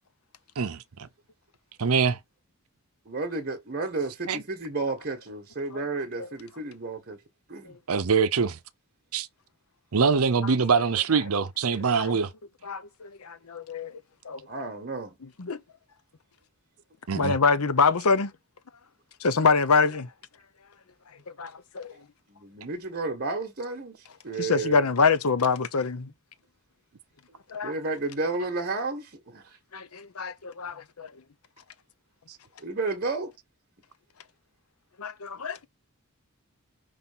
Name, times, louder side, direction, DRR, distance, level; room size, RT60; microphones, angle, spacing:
voice 1, 0.6-1.1 1.8-2.2 4.3-4.4 7.9-8.6 9.1-9.3 9.9-12.3 17.1-17.4 32.3-32.4, right 5 dB, 75° right, 0.6 m, -24 dB
voice 2, 3.1-7.2 7.5-7.7 14.5-15.2 22.3-24.0 24.2-24.9 27.6-29.6 32.6-33.3, right 3 dB, 45° right, 1.2 m, -32 dB
voice 3, 12.6-14.0 14.2-14.4 15.4-15.6 17.1-18.3 19.2-20.1 21.4-21.9 24.4-26.1 27.5-27.7 29.7-31.1 35.0-35.7, left 4 dB, 80° left, 0.8 m, -25 dB
5.8 x 3.3 x 5.5 m
head